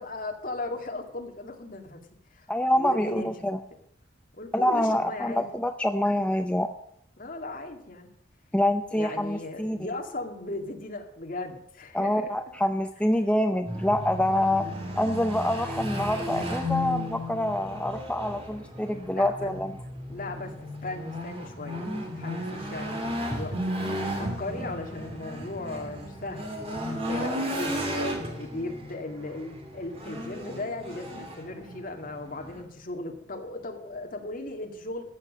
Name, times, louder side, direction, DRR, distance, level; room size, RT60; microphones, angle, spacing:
voice 1, 0.0-2.0 2.3-2.5 2.7-3.3 4.4-5.4 7.2-8.1 8.9-12.3 19.1-19.5 20.1-20.5 20.8-23.6 23.9-27.8 28.4-35.0, left 2 dB, 45° left, 3 dB, 2.2 m, -37 dB
voice 2, 2.5-3.6 4.5-6.7 8.5-9.8 11.9-19.7 21.9-22.0, left 1 dB, 5° left, 6 dB, 0.5 m, -26 dB
sound 1, 13.6-32.6, equal, 30° right, 2.7 m, -34 dB
14.5 x 7.3 x 8.6 m, 0.72 s
head